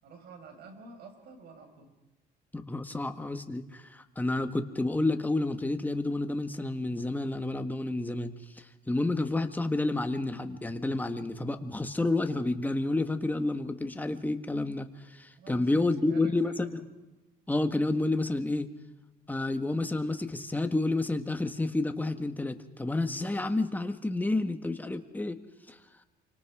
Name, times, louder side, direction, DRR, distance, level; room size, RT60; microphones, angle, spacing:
voice 1, 0.0-2.0 15.4-16.8, right 4 dB, 70° right, 6 dB, 5.3 m, -48 dB
voice 2, 2.5-16.7 17.5-18.7 19.3-25.4 25.7-25.8, left 2 dB, 10° left, 7 dB, 1.6 m, -30 dB
28.5 x 25.5 x 4.9 m, 1.1 s
cardioid pair, 110°, 17 cm